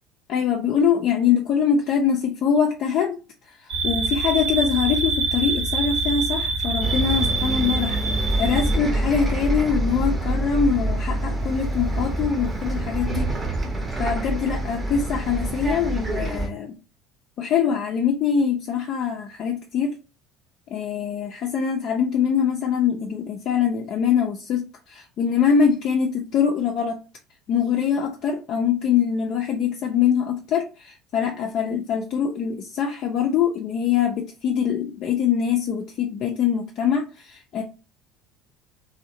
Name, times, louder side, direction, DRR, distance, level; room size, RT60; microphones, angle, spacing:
voice 1, 0.3-3.2 3.5-13.3 14.0-16.8 17.4-19.9 20.7-27.0 27.5-37.6, left 7 dB, 50° left, 0.4 m, -23 dB
sound 1, 3.7-8.8, right 3 dB, 70° right, 0.7 m, -25 dB
Bus, 6.8-16.5, right 1 dB, 20° right, 0.7 m, -26 dB
2.6 x 2.1 x 2.6 m
figure-of-eight pair, 65°, 0 cm